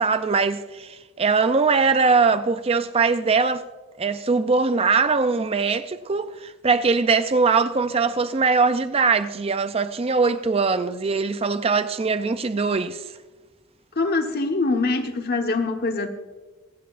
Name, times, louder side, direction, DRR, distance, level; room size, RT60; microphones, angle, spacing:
voice 1, 0.0-3.6 4.0-13.0, right 4 dB, 30° right, 0.4 m, -21 dB
voice 2, 14.0-16.1, left 3 dB, 50° left, 1.2 m, -23 dB
27.0 x 9.1 x 2.5 m
head